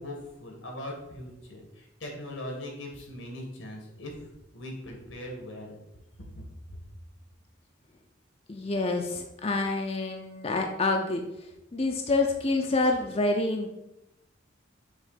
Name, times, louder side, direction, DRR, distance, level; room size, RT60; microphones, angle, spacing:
voice 1, 0.0-5.8 6.3-6.8, left 1 dB, 90° left, 0 dB, 1.8 m, -40 dB
voice 2, 8.5-11.2 11.7-13.7, left 2 dB, 30° left, 2 dB, 0.5 m, -27 dB
6.5 x 3.1 x 5.0 m, 0.90 s
head